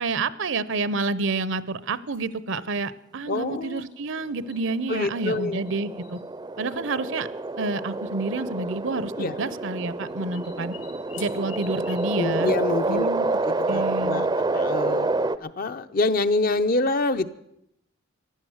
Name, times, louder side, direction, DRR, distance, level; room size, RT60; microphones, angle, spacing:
voice 1, 0.0-6.2 6.6-7.3 7.6-10.7 11.2-12.5 12.9-13.4 13.7-14.3, right 3 dB, 65° right, 18 dB, 0.7 m, -29 dB
sound 1, 2.1-2.4 3.7-5.0 5.3-6.2 7.2-7.3 7.4-7.5 8.5-8.8 10.0-13.3, left 8 dB, 65° left, 2.3 m, -48 dB
voice 2, 3.3-3.8 4.9-5.6 9.2-9.4 12.2-13.1 13.4-14.3 14.5-15.1 15.4-17.3, left 2 dB, 45° left, 10 dB, 0.7 m, -26 dB
sound 2, 4.5-15.4, right 2 dB, 20° right, 0.5 m, -28 dB
15.5 x 11.5 x 7.9 m, 0.78 s
head